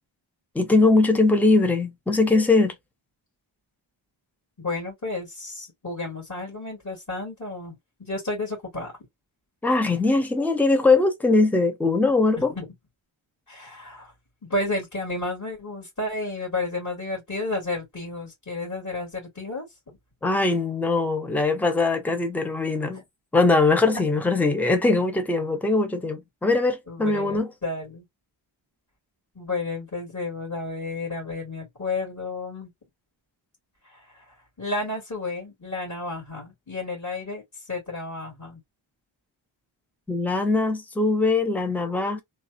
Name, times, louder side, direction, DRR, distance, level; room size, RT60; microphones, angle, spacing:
voice 1, 0.5-2.7 9.6-12.5 20.2-23.0 23.3-27.5 40.1-42.2, left 3 dB, 5° left, 0.5 m, -21 dB
voice 2, 4.6-8.9 12.4-12.7 13.5-14.1 14.4-19.7 22.9-23.0 23.9-24.0 26.9-28.0 29.4-32.7 33.8-34.2 34.6-38.6, left 2 dB, 40° left, 2.1 m, -32 dB
3.2 x 2.4 x 2.6 m
wide cardioid pair, 150°, 48 cm